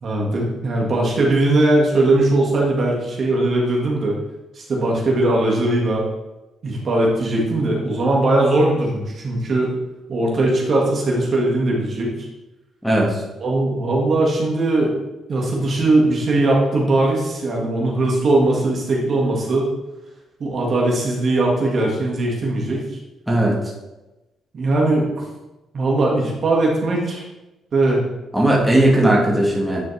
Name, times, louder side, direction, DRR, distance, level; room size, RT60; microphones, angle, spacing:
voice 1, 0.0-4.2 4.5-6.0 6.6-9.7 10.1-12.3 13.4-14.9 15.3-19.7 20.4-22.8 24.5-25.2 25.7-27.2 27.7-28.0 28.7-28.9, right 2 dB, 50° right, -2 dB, 1.7 m, -19 dB
voice 2, 12.8-13.2 23.3-23.7 28.3-29.8, right 1 dB, 5° right, -4 dB, 1.7 m, -17 dB
9.3 x 4.2 x 3.3 m, 1.0 s
cardioid pair, 90°, 0 cm